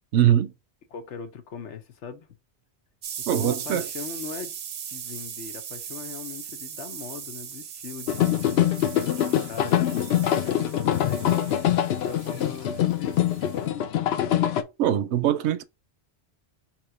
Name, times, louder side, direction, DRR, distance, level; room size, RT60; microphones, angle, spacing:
voice 1, 0.1-0.5 3.3-3.9 14.8-15.6, right 11 dB, 80° right, 0.9 m, -22 dB
voice 2, 0.9-2.3 3.3-4.5 4.9-11.5 12.0-13.8, left 6 dB, 85° left, 1.2 m, -40 dB
sound 1, 3.0-13.6, right 8 dB, 55° right, 0.6 m, -39 dB
sound 2, 8.1-14.6, left 11 dB, 70° left, 0.8 m, -24 dB
3.5 x 3.0 x 4.8 m
omnidirectional pair, 1.1 m